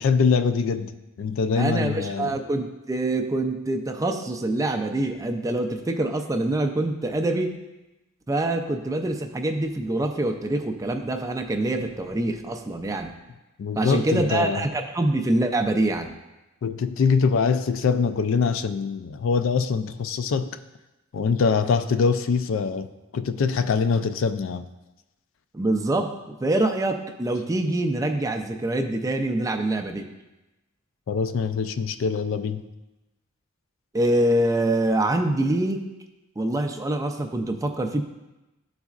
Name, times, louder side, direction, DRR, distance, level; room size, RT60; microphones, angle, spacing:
voice 1, 0.0-2.4 13.6-14.7 16.6-20.6 21.1-24.7 31.1-32.7, left 5 dB, 65° left, 10 dB, 0.4 m, -24 dB
voice 2, 1.6-7.5 8.3-13.1 13.8-16.1 25.5-30.1 33.9-35.9 36.4-38.0, right 1 dB, 15° right, 5 dB, 0.4 m, -25 dB
11.5 x 4.0 x 2.4 m, 1.0 s
head